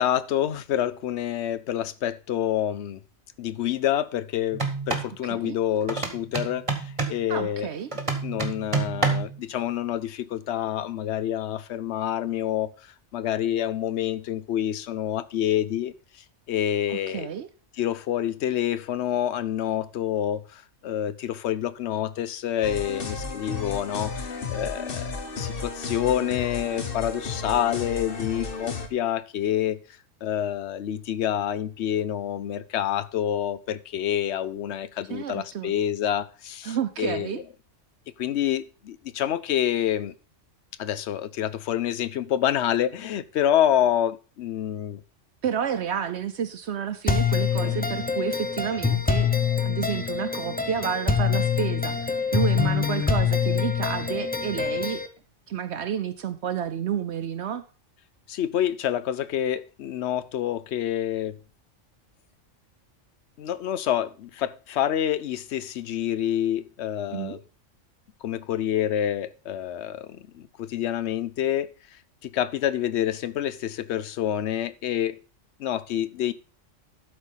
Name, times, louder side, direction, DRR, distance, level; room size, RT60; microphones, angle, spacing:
voice 1, 0.0-3.0 3.4-7.7 8.2-17.3 17.8-29.8 30.2-37.4 38.2-40.1 40.8-45.0 47.6-47.8 58.3-61.4 63.4-67.4 68.2-71.7 72.2-75.2 75.6-76.3, left 11 dB, 65° left, 0.9 m, -27 dB
sound 1, 4.5-5.1 5.9-7.2 7.9-9.4, right 4 dB, 25° right, 1.4 m, -27 dB
voice 2, 5.2-5.6 7.3-7.9 16.9-17.5 35.1-35.7 36.6-37.4 45.4-49.3 49.6-55.0 55.5-57.6 67.1-67.4, right 8 dB, 65° right, 0.9 m, -30 dB
sound 2, 22.6-28.9, left 4 dB, 50° left, 1.3 m, -33 dB
sound 3, 47.1-55.1, left 6 dB, 10° left, 0.6 m, -25 dB
12.0 x 4.5 x 5.4 m
omnidirectional pair, 1.3 m